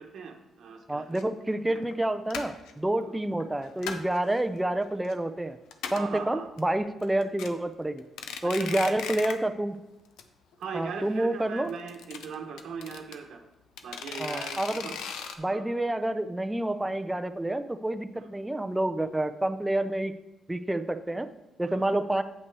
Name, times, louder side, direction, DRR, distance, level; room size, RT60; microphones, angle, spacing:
voice 1, 0.0-1.1 1.7-1.8 3.1-3.2 5.9-6.5 8.4-9.0 10.6-13.4 13.8-15.0 15.4-15.6 18.1-18.3 21.6-22.0, right 6 dB, 70° right, 4 dB, 1.0 m, -40 dB
voice 2, 0.9-5.6 5.9-8.0 8.4-9.8 10.7-11.7 14.2-14.9 15.4-20.1 20.5-21.3 21.6-22.2, right 1 dB, 10° right, 9 dB, 0.4 m, -28 dB
sound 1, 1.1-1.2 1.8-1.9 2.3-2.7 3.4-4.2 4.6-5.1 5.4-5.5 5.7-6.2 6.6-6.7 7.0-7.5 8.0-9.5 9.7-9.8 10.2-10.3 10.5-10.6 11.7-13.1 13.8-15.3, left 7 dB, 85° left, 0.6 m, -37 dB
8.1 x 5.9 x 4.7 m, 0.98 s
cardioid pair, 90°, 0 cm